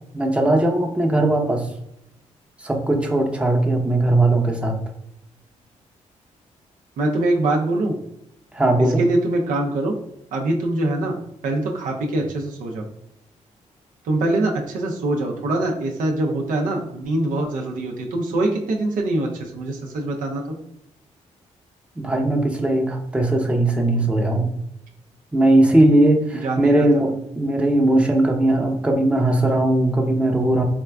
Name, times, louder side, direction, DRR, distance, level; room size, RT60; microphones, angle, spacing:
voice 1, 0.1-1.7 2.6-4.8 8.5-9.0 22.0-24.5 25.3-30.6, right 1 dB, 10° right, 2 dB, 0.6 m, -19 dB
voice 2, 7.0-8.0 9.0-9.9 10.3-11.2 11.4-12.9 14.0-20.5 26.3-26.9, right 2 dB, 80° right, 0 dB, 0.5 m, -23 dB
4.3 x 2.4 x 2.2 m, 0.81 s
cardioid pair, 70°, 13 cm